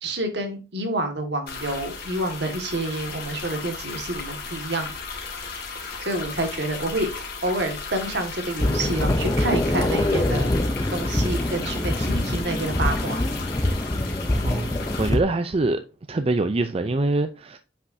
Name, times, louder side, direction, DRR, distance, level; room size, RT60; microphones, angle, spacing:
voice 1, 0.0-4.9 6.0-10.5 10.9-13.2, right 1 dB, 65° right, 1.8 m, -28 dB
sound 1, 1.5-15.1, left 4 dB, 55° left, 2.4 m, -35 dB
sound 2, 8.6-15.2, left 1 dB, 20° left, 0.6 m, -24 dB
voice 2, 15.0-15.8 16.1-17.6, right 2 dB, 35° right, 0.5 m, -24 dB
8.1 x 5.8 x 2.7 m
head